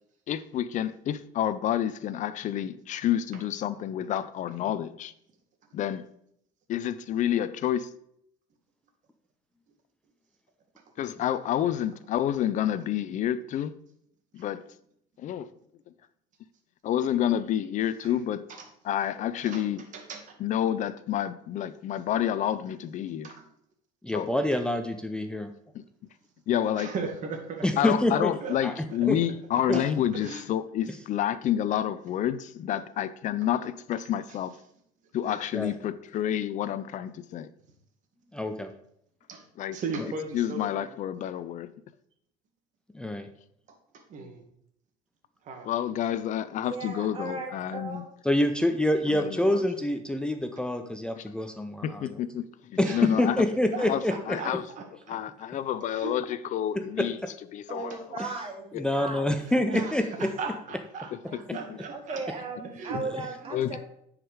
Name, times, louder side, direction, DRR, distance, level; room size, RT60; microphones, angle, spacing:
voice 1, 0.3-5.1 5.7-6.1 6.7-7.9 11.0-13.8 14.3-14.6 15.2-15.5 16.8-18.5 18.8-19.8 20.4-23.3 24.1-24.3 25.7-25.8 26.5-26.9 27.8-34.5 35.1-37.5 39.6-39.8 40.3-41.7 44.2-44.3 45.6-48.0 49.1-49.6 51.2-51.3 51.8-53.4 53.9-54.6 55.1-57.2 57.5-58.2 58.7-58.8 62.9-63.0 63.5-63.8, left 11 dB, 50° left, 0.6 m, -29 dB
voice 2, 24.0-25.5 27.6-28.3 28.6-28.7 29.1-29.2 29.7-29.8 35.5-35.7 38.3-38.7 40.0-40.1 42.9-43.3 48.2-52.0 52.8-54.4 57.0-57.1 58.2-58.3 58.8-60.3, left 1 dB, 5° left, 0.6 m, -26 dB
voice 3, 26.8-27.6 28.4-28.6 29.7-30.4 35.3-35.4 39.3-39.4 39.7-40.9 43.9-44.4 45.4-45.7 52.8-53.1 53.7-55.2 55.9-56.1 57.8-58.0 59.5-61.1 61.5-62.2 62.7-63.0 63.4-63.5, right 4 dB, 50° right, 2.0 m, -37 dB
voice 4, 46.6-48.0 57.7-58.7 58.9-59.3 59.7-60.0 61.3-61.4 61.9-63.8, right 3 dB, 35° right, 2.5 m, -37 dB
9.7 x 4.9 x 4.8 m
cardioid pair, 115°, 16 cm